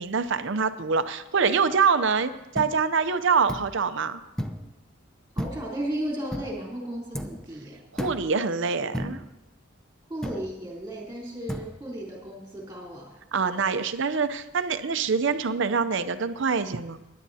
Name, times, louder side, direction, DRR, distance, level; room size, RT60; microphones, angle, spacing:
voice 1, 0.0-4.2 7.9-9.2 13.3-17.0, right 5 dB, 70° right, 11 dB, 0.6 m, -25 dB
sound 1, 2.6-2.7 3.5-3.7 4.4-4.7 5.4-5.8 6.3-6.6 7.1-7.5 8.0-8.3 8.9-9.3 10.2-10.5 11.5-11.7, equal, 5° left, 0.7 m, -33 dB
voice 2, 5.4-7.8 10.1-13.2, right 1 dB, 15° right, -3 dB, 3.6 m, -34 dB
23.5 x 11.0 x 2.8 m, 0.97 s
head